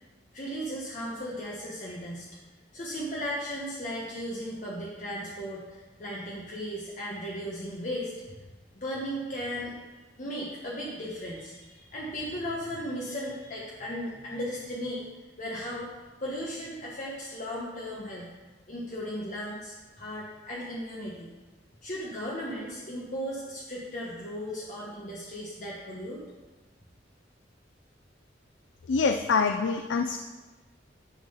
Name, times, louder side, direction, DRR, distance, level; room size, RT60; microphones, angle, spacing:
voice 1, 0.3-2.3 2.7-8.4 8.7-9.7 10.2-15.1 15.4-15.9 16.2-18.3 18.7-21.3 21.8-26.2, equal, 45° left, -5 dB, 1.2 m, -36 dB
voice 2, 28.9-30.2, left 4 dB, 80° left, 6 dB, 0.4 m, -25 dB
11.0 x 3.8 x 5.6 m, 1.2 s
head